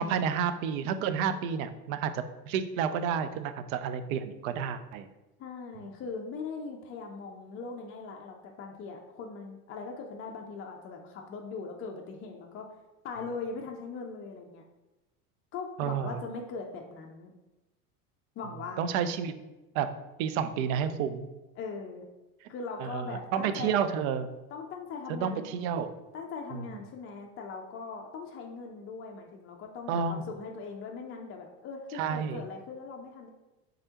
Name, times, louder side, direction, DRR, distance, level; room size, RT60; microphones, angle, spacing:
voice 1, 0.0-5.1 5.8-5.9 15.8-16.2 18.8-19.4 19.7-19.9 20.2-21.3 22.4-22.5 22.8-24.3 25.1-25.9 26.5-26.8 29.9-30.3 31.9-32.4, right 7 dB, 65° right, 11 dB, 0.5 m, -30 dB
voice 2, 5.4-12.7 13.0-14.6 15.5-17.3 18.4-18.9 21.6-22.0 22.5-24.0 24.5-25.5 26.1-33.3, left 4 dB, 30° left, 1 dB, 0.4 m, -40 dB
3.6 x 3.3 x 2.8 m, 1.1 s
hypercardioid pair, 80°, 45 cm